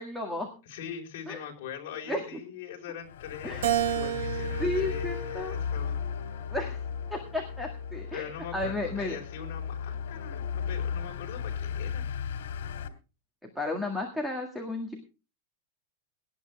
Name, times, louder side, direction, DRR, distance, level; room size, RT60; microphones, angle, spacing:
voice 1, 0.0-0.5 1.3-1.4 2.1-2.2 3.4-3.7 4.6-5.5 6.5-6.8 7.1-8.3 8.5-9.2 13.6-14.9, left 1 dB, ahead, 3 dB, 1.8 m, -33 dB
voice 2, 0.6-6.0 8.1-12.0, left 9 dB, 50° left, 0 dB, 4.8 m, -41 dB
sound 1, 3.0-12.9, left 7 dB, 85° left, 2.1 m, -35 dB
Keyboard (musical), 3.6-6.1 6.7-7.9, right 12 dB, 80° right, 1.1 m, -33 dB
18.0 x 11.0 x 3.5 m, 0.32 s
supercardioid pair, 170°, 0 cm